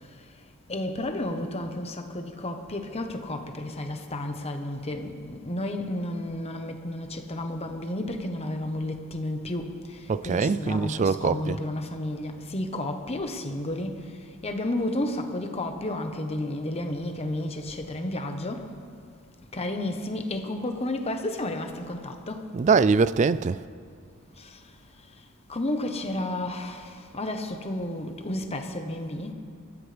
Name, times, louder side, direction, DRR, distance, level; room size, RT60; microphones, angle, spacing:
voice 1, 0.7-14.0 14.4-18.7 19.5-22.5 24.4-24.6 25.5-29.3, left 1 dB, 30° left, 1.1 m, -32 dB
voice 2, 10.1-11.6 22.5-23.6, right 5 dB, 35° right, 0.3 m, -23 dB
23.0 x 13.5 x 3.4 m
head